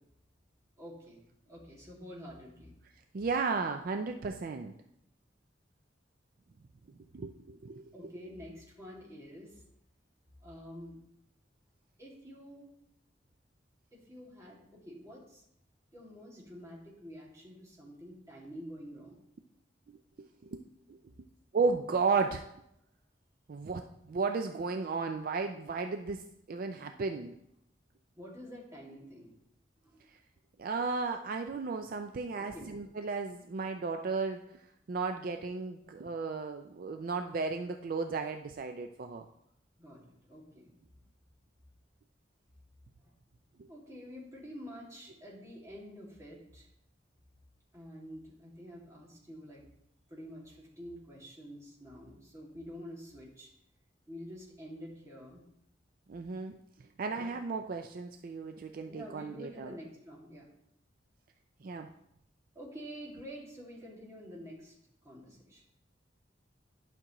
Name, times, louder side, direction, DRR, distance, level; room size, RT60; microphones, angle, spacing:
voice 1, 0.8-1.2 1.4-2.7 7.9-9.6 10.4-11.0 12.0-12.7 13.9-15.4 15.9-19.2 28.2-29.3 29.8-30.1 32.3-32.7 39.8-40.7 43.0-43.1 43.7-46.7 47.7-49.6 50.1-53.5 54.1-55.5 57.2-57.3 58.9-60.5 62.5-64.8 65.0-65.6, equal, 15° right, -5 dB, 2.1 m, -48 dB
voice 2, 3.1-4.7 7.1-7.9 20.2-20.6 20.9-21.0 21.5-22.5 23.5-27.4 30.1-30.2 30.6-39.3 43.6-43.7 56.1-56.6 57.0-59.7 61.6-61.9, right 4 dB, 50° right, 5 dB, 0.4 m, -34 dB
11.0 x 6.0 x 3.0 m, 0.79 s
head